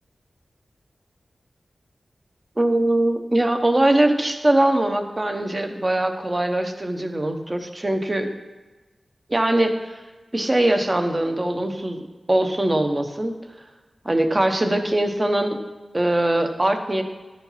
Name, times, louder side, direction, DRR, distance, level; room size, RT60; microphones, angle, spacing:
voice 1, 2.6-8.3 9.3-10.0 10.3-13.3 14.0-15.6 15.9-17.0, right 1 dB, 25° right, 5 dB, 0.9 m, -21 dB
13.0 x 4.4 x 5.6 m, 1.2 s
wide cardioid pair, 95°, 0 cm